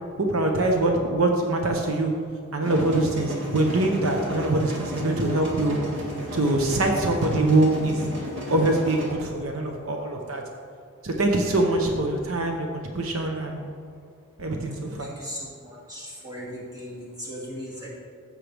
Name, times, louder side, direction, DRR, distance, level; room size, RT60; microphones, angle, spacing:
voice 1, 0.2-2.1 2.5-5.8 6.3-8.0 8.5-10.4 11.0-13.7 14.4-15.1, right 2 dB, 70° right, 2 dB, 0.9 m, -24 dB
sound 1, 2.6-9.1, equal, 55° right, 2.1 m, -33 dB
voice 2, 15.0-17.9, equal, 15° right, -6 dB, 2.3 m, -38 dB
15.0 x 6.6 x 3.4 m, 2.4 s
head